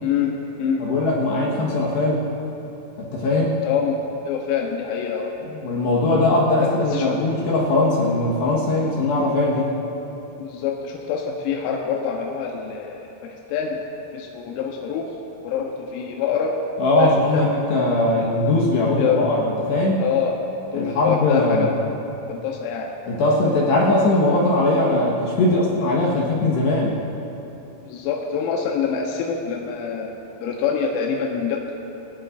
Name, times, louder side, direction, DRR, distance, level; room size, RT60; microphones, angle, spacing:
voice 1, 0.0-0.9 3.6-4.0 4.3-5.3 6.6-7.2 10.4-13.8 14.1-15.1 15.4-16.6 17.0-17.5 18.2-18.3 19.0-19.3 20.0-20.4 20.7-21.8 22.3-22.9 27.9-30.1 30.4-31.7, left 7 dB, 85° left, 0 dB, 3.7 m, -25 dB
voice 2, 0.8-2.2 3.0-3.6 5.5-9.7 16.8-19.4 19.7-20.0 20.7-21.7 23.1-26.9, left 2 dB, 70° left, -4 dB, 3.0 m, -20 dB
20.5 x 18.0 x 2.5 m, 3.0 s
omnidirectional pair, 6.0 m